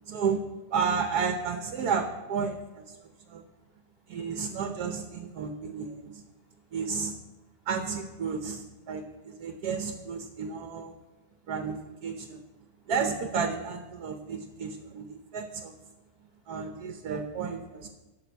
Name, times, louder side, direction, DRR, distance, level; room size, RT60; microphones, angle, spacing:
voice 1, 0.0-0.4 0.7-3.0 3.3-3.4 4.1-6.2 6.7-7.2 7.7-10.9 11.5-12.4 12.9-15.7 16.5-17.9, right 5 dB, 70° right, 5 dB, 1.5 m, -32 dB
voice 2, 3.0-4.0 6.4-6.8 7.4-7.7 12.7-12.9 15.2-15.3 16.2-16.5, equal, 35° left, -4 dB, 2.7 m, -72 dB
13.0 x 6.3 x 8.1 m, 1.1 s
omnidirectional pair, 1.7 m